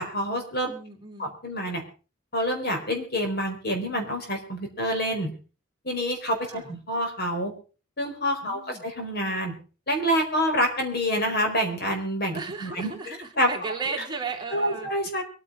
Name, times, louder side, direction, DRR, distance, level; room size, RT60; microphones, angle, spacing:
voice 1, 0.0-0.7 1.2-1.8 2.3-5.3 5.8-7.5 8.0-9.5 9.9-13.5 14.5-15.2, equal, 50° left, 4 dB, 4.6 m, -27 dB
voice 2, 0.7-1.3 6.5-6.7 8.4-8.8 12.3-14.9, right 4 dB, 20° right, 1 dB, 3.2 m, -35 dB
23.5 x 9.9 x 5.0 m, 0.37 s
head